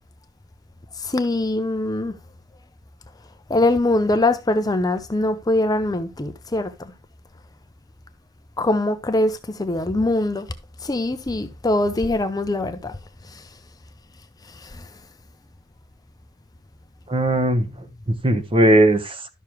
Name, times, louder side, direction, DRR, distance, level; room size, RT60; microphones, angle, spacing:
voice 1, 1.0-2.2 3.5-6.9 8.6-10.5 10.8-13.0 13.3-13.5 14.5-14.9, left 2 dB, 20° left, 0.6 m, -23 dB
voice 2, 17.1-19.3, right 1 dB, 25° right, 1.0 m, -19 dB
12.0 x 6.7 x 3.0 m
head